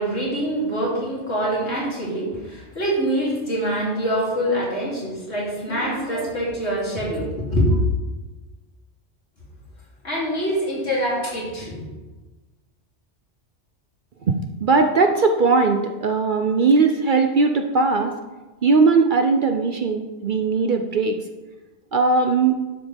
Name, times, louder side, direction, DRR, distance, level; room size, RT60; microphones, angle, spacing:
voice 1, 0.0-7.8 10.0-11.9, equal, 65° left, -5 dB, 3.4 m, -24 dB
voice 2, 14.3-18.2 18.6-21.2 21.9-22.6, right 4 dB, 50° right, 5 dB, 0.7 m, -19 dB
11.5 x 7.4 x 3.5 m, 1.2 s
omnidirectional pair, 1.2 m